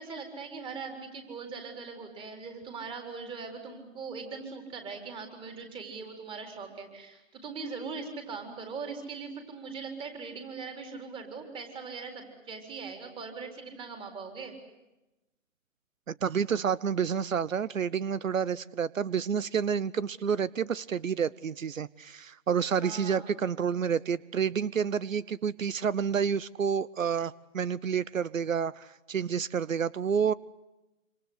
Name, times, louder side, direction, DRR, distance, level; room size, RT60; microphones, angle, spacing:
voice 1, 0.0-14.6 22.7-23.3, right 5 dB, 15° right, 5 dB, 4.2 m, -40 dB
voice 2, 16.1-30.3, right 7 dB, 85° right, 21 dB, 0.9 m, -29 dB
26.5 x 26.5 x 8.1 m, 0.99 s
hypercardioid pair, 150°, 39 cm